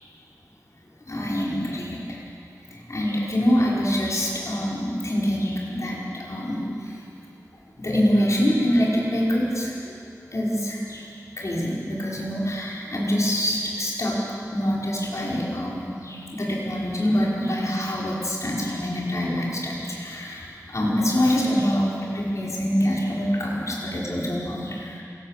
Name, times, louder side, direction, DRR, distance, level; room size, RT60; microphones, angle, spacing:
voice 1, 1.1-2.0 2.7-7.0 7.8-9.9 10.3-11.1 11.4-25.0, equal, 55° left, -5 dB, 5.3 m, -25 dB
27.5 x 19.0 x 7.7 m, 2.5 s
wide cardioid pair, 50°, 6 cm